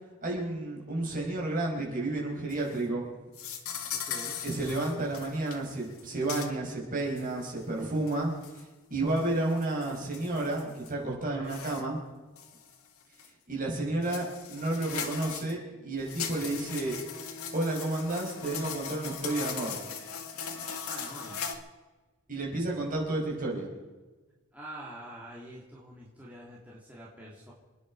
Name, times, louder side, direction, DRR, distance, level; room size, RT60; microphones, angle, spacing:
voice 1, 0.2-3.0 4.4-8.3 8.9-12.0 13.5-17.0 17.5-19.8 22.3-23.7, right 2 dB, 40° right, -2 dB, 5.0 m, -31 dB
sound 1, 2.5-2.8 3.3-5.6 5.8-6.0 6.3-6.5 7.2-7.3 8.1-8.6 9.2-10.9 11.5-11.8 12.4-12.7 13.2-13.3 14.0-15.5 16.0-21.5, left 7 dB, 85° left, 1.8 m, -39 dB
voice 2, 3.9-4.4 11.3-11.6 20.8-21.4 24.5-27.5, right 1 dB, 5° right, -6 dB, 2.8 m, -46 dB
28.5 x 10.0 x 4.8 m, 1.2 s
head